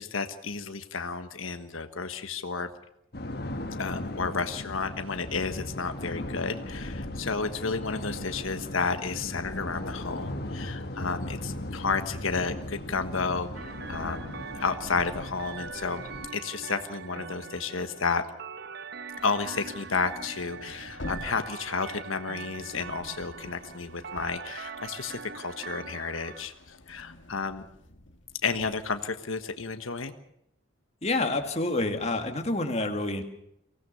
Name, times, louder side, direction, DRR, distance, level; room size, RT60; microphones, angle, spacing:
voice 1, 0.0-2.7 3.8-16.0 16.3-18.2 19.2-26.5 26.9-27.6 28.4-30.1, left 4 dB, 90° left, 8 dB, 1.4 m, -32 dB
sound 1, 3.1-16.3, left 1 dB, 50° left, 1.5 m, -37 dB
sound 2, 13.5-26.5, right 5 dB, 55° right, 0.9 m, -42 dB
sound 3, 19.2-25.3 25.7-29.0, left 1 dB, 65° left, 2.0 m, -47 dB
voice 2, 31.0-33.2, left 2 dB, 30° left, 4 dB, 2.3 m, -28 dB
24.0 x 17.5 x 6.9 m, 0.76 s
head